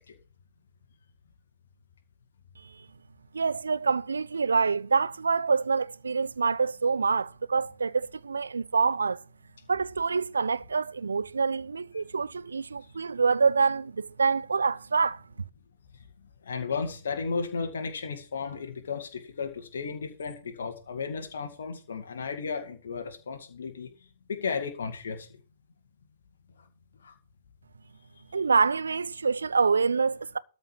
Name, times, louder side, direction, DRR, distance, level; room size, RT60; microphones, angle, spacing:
voice 1, 3.3-9.2 9.7-15.2 28.3-30.4, right 5 dB, 80° right, 0.6 m, -26 dB
voice 2, 16.5-23.9 24.3-25.3 27.0-27.1, left 5 dB, 65° left, 2.1 m, -34 dB
13.0 x 5.3 x 7.5 m
figure-of-eight pair, 120°, 0 cm